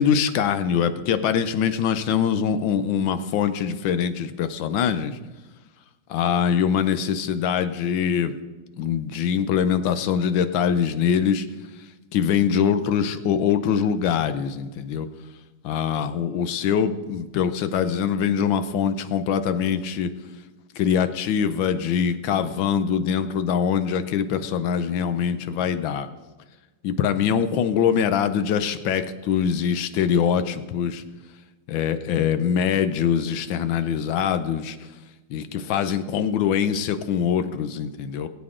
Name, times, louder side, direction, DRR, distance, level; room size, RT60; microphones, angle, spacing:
voice 1, 0.0-5.2 6.1-8.3 8.8-11.5 12.1-15.1 15.6-20.1 20.8-26.1 26.8-31.0 31.7-34.8 35.3-38.3, left 8 dB, 80° left, 11 dB, 1.5 m, -23 dB
20.5 x 8.2 x 3.8 m, 1.2 s
omnidirectional pair, 2.1 m